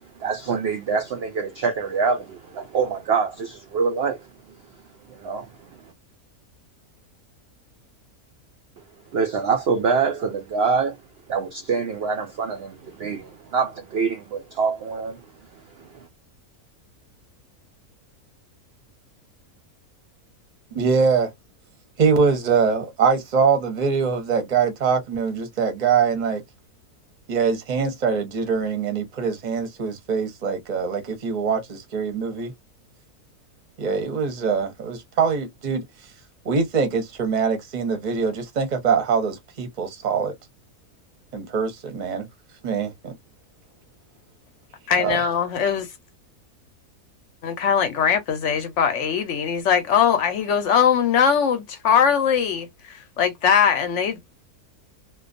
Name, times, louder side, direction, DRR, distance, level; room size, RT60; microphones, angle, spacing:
voice 1, 0.2-4.3 5.1-5.9 9.1-11.0 11.3-15.2 15.8-16.1, right 5 dB, 80° right, 0.5 m, -25 dB
voice 2, 20.7-21.3 22.0-26.4 27.3-32.5 33.8-35.8 36.4-40.3 41.3-42.3 42.6-43.1 45.0-45.2, right 5 dB, 40° right, 0.7 m, -23 dB
voice 3, 44.9-45.9 47.4-54.2, left 7 dB, 65° left, 0.8 m, -21 dB
2.3 x 2.2 x 2.4 m
omnidirectional pair, 1.6 m